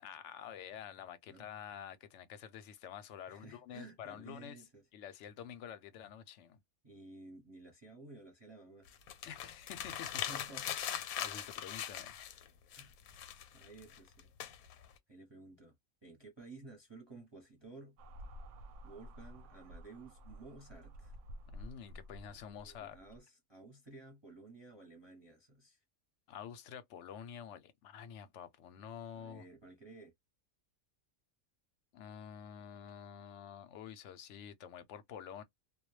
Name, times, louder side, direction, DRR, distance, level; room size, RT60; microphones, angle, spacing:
voice 1, 0.0-4.6 4.9-6.6 9.2-10.2 10.8-12.2 21.5-23.0 26.3-29.4 31.9-35.4, left 8 dB, 65° left, 0.8 m, -49 dB
voice 2, 3.3-4.8 6.8-8.9 10.3-11.1 12.7-13.0 13.5-14.3 15.1-15.7 16.0-18.0 18.8-21.2 22.4-25.8 29.1-30.1, right 2 dB, 25° right, 0.7 m, -54 dB
sound 1, 8.9-12.5 12.7-15.0, left 10 dB, 90° left, 1.0 m, -41 dB
sound 2, 18.0-23.2, equal, 70° right, 0.8 m, -51 dB
2.2 x 2.2 x 3.0 m
omnidirectional pair, 1.5 m